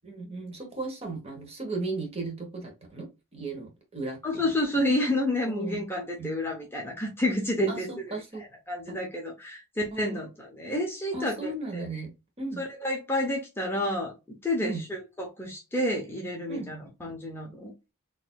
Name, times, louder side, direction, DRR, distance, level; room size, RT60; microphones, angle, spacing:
voice 1, 0.0-4.5 5.4-5.8 6.2-6.3 7.7-8.5 8.9-9.0 9.9-10.2 11.1-12.6 14.6-14.8 16.5-16.7, right 3 dB, 25° right, 3 dB, 1.0 m, -36 dB
voice 2, 4.2-7.9 8.7-11.8 12.6-14.1 14.4-17.7, left 1 dB, 10° left, -1 dB, 0.7 m, -30 dB
4.1 x 2.6 x 2.2 m, 0.26 s
head